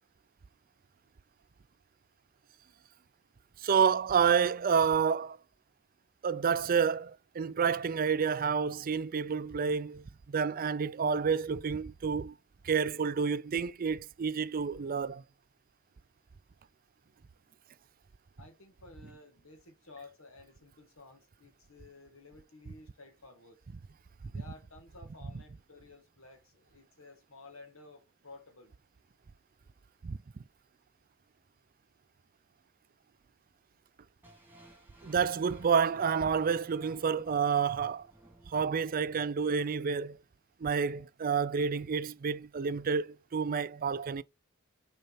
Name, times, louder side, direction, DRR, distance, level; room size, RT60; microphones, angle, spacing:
voice 1, 3.6-5.4 6.2-12.3 12.6-15.2 24.3-24.4 30.0-30.2 35.0-38.1 38.5-40.2 40.6-44.2, right 6 dB, 45° right, 0.4 m, -29 dB
voice 2, 18.4-23.6 24.3-28.7, left 3 dB, 85° left, 2.2 m, -54 dB
sound 1, 34.2-40.2, right 1 dB, 10° right, 2.0 m, -57 dB
6.5 x 4.4 x 4.1 m
head